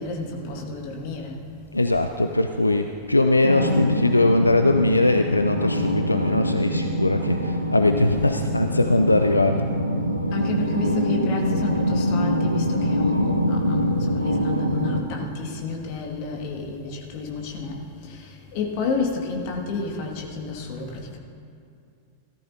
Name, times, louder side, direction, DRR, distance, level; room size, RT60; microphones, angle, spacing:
voice 1, 0.0-1.4 10.3-21.2, left 4 dB, 45° left, 0 dB, 2.0 m, -31 dB
voice 2, 1.7-9.6, left 2 dB, 85° left, 7 dB, 0.4 m, -21 dB
sound 1, 3.4-15.0, equal, 85° right, 0.8 m, -24 dB
17.0 x 14.0 x 2.8 m, 2.5 s
figure-of-eight pair, 90°, 0 cm